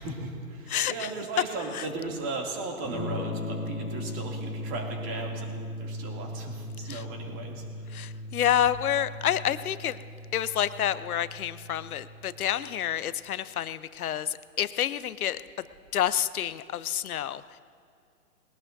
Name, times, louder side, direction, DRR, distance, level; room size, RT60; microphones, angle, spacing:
voice 1, 0.0-7.9, right 3 dB, 25° right, 0 dB, 2.6 m, -36 dB
Electric guitar / Strum, 2.8-12.6, left 1 dB, 5° left, 2.6 m, -38 dB
voice 2, 7.9-10.0 10.3-14.3 14.6-15.4 15.9-17.4, left 10 dB, 65° left, 15 dB, 0.8 m, -28 dB
21.5 x 17.5 x 2.7 m, 2.5 s
hypercardioid pair, 135°, 47 cm